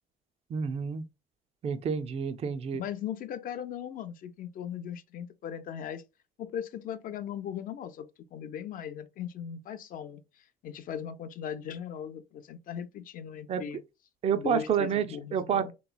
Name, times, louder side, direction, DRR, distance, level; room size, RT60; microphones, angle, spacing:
voice 1, 0.5-1.1 1.6-2.8 13.5-13.6 14.2-15.1 15.3-15.7, right 7 dB, 35° right, 0.4 m, -29 dB
voice 2, 2.8-6.0 6.4-13.8 14.3-15.7, left 9 dB, 55° left, 0.4 m, -38 dB
3.2 x 3.0 x 2.2 m
cardioid pair, 110°, 17 cm